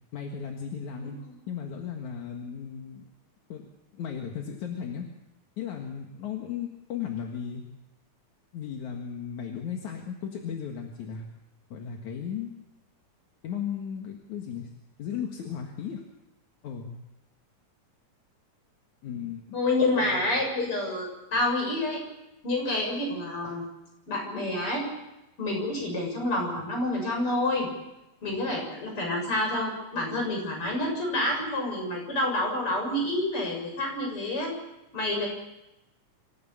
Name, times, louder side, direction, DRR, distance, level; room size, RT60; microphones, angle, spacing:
voice 1, 0.1-1.2 1.5-3.1 3.5-3.7 3.9-5.1 5.6-7.6 8.5-11.3 11.7-12.5 13.4-14.7 15.0-16.0 16.6-17.0 19.0-19.6 20.0-20.2, left 8 dB, 70° left, 2 dB, 3.0 m, -35 dB
voice 2, 19.5-22.0 22.4-23.6 24.1-24.8 25.4-27.7 28.2-34.5 34.9-35.3, left 1 dB, 45° left, 1 dB, 7.7 m, -28 dB
26.0 x 15.5 x 7.3 m, 0.94 s
omnidirectional pair, 3.5 m